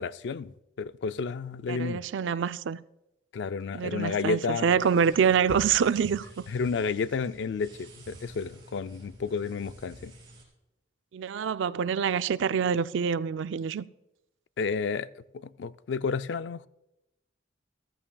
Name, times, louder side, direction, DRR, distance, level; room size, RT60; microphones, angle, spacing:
voice 1, 0.0-2.0 3.3-4.8 6.5-10.1 14.6-15.1 15.3-16.7, left 5 dB, 75° left, 0.4 m, -31 dB
voice 2, 1.7-2.8 3.7-6.5 11.1-13.8, right 7 dB, 85° right, 0.4 m, -26 dB
sound 1, 4.8-10.4, right 1 dB, 25° right, 2.9 m, -47 dB
14.0 x 14.0 x 2.3 m
head